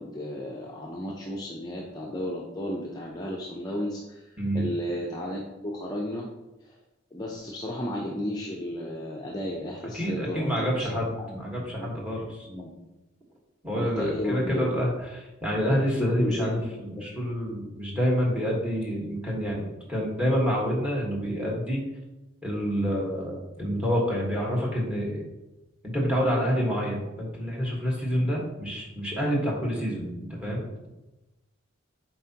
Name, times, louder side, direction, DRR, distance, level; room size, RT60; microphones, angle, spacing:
voice 1, 0.0-6.3 6.6-6.8 7.1-10.9 11.2-11.4 11.7-11.9 12.5-12.7 13.7-14.7 16.0-16.7 16.9-17.1, left 1 dB, 20° left, -3 dB, 0.6 m, -33 dB
voice 2, 4.4-4.7 9.9-12.5 13.6-21.8 22.4-25.2 25.8-30.7, equal, 5° right, -3 dB, 1.4 m, -28 dB
7.8 x 4.5 x 2.9 m, 1.0 s
head